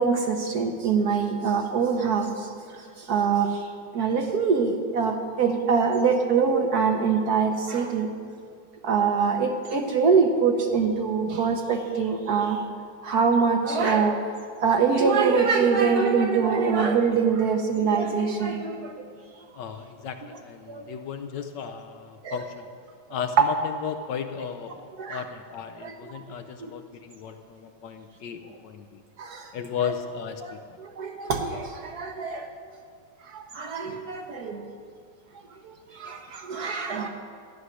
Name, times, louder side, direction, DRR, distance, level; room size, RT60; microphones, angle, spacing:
voice 1, 0.0-2.3 3.1-3.5 3.9-8.1 8.8-12.6 13.0-14.1 14.6-18.8 20.7-20.8 22.2-22.4 23.4-23.5 25.0-25.2 25.8-25.9 29.2-29.4 31.0-32.5 33.6-34.6 36.0-37.1, right 5 dB, 60° right, 4 dB, 1.2 m, -23 dB
voice 2, 19.5-22.7 23.1-29.0 29.5-30.4, left 7 dB, 70° left, 7 dB, 1.2 m, -35 dB
13.0 x 6.3 x 9.7 m, 2.3 s
omnidirectional pair, 2.2 m